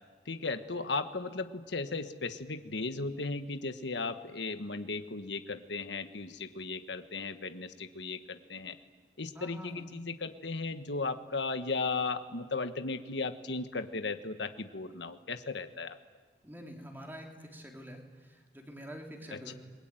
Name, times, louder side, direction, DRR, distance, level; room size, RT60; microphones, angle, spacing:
voice 1, 0.3-8.8 9.2-16.0 19.3-19.5, left 3 dB, 75° left, 9 dB, 1.4 m, -36 dB
voice 2, 9.3-9.9 16.4-19.5, equal, 10° right, 1 dB, 3.3 m, -46 dB
29.0 x 22.0 x 9.1 m, 1.5 s
head